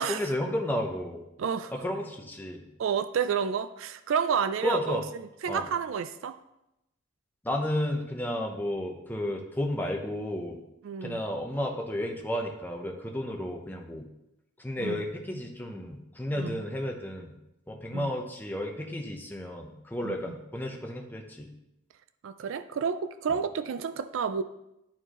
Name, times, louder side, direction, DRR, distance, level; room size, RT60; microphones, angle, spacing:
voice 1, 0.1-1.2 1.8-2.6 4.6-5.0 5.5-5.6 7.4-10.6 11.0-14.1 14.6-17.4 17.7-21.5, left 1 dB, 10° left, 2 dB, 0.7 m, -32 dB
voice 2, 1.4-1.7 2.8-6.4 10.8-11.2 14.8-15.0 16.3-16.6 17.9-18.1 20.0-20.2 22.2-24.4, right 6 dB, 65° right, 11 dB, 0.3 m, -30 dB
11.0 x 4.4 x 3.0 m, 0.87 s
head